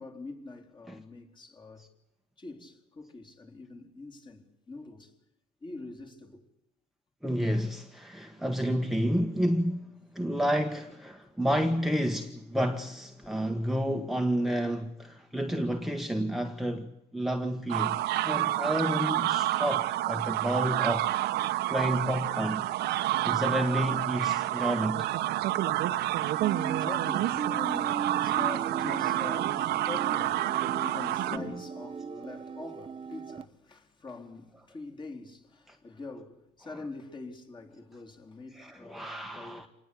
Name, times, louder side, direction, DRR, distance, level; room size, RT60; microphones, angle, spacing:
voice 1, 0.0-1.9 2.4-5.1 5.6-6.4 13.2-13.6 25.6-39.7, left 3 dB, 30° left, 3.8 m, -44 dB
voice 2, 7.2-9.9 10.1-18.0 18.2-21.1 21.7-22.7 23.2-25.1 26.3-26.4 35.7-35.8 38.6-39.7, equal, ahead, 1.5 m, -30 dB
sound 1, 17.7-31.4, right 15 dB, 80° right, 1.4 m, -29 dB
sound 2, 26.4-33.4, right 5 dB, 30° right, 0.9 m, -38 dB
26.5 x 19.5 x 8.5 m
cardioid pair, 110°, 17 cm